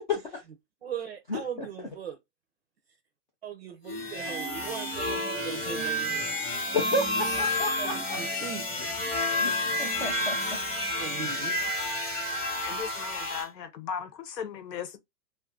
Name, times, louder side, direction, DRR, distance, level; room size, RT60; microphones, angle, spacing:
voice 1, 0.1-0.4 1.3-1.9 6.7-8.2 9.4-10.4 11.2-11.3, left 2 dB, 35° left, 0.4 m, -32 dB
voice 2, 0.8-2.2 3.4-6.8 7.8-8.6 11.0-11.5, right 7 dB, 40° right, 0.5 m, -39 dB
sound 1, 3.9-13.5, left 1 dB, 15° left, 0.9 m, -30 dB
voice 3, 12.4-15.0, left 7 dB, 75° left, 1.0 m, -37 dB
2.5 x 2.4 x 3.5 m
hypercardioid pair, 155°, 49 cm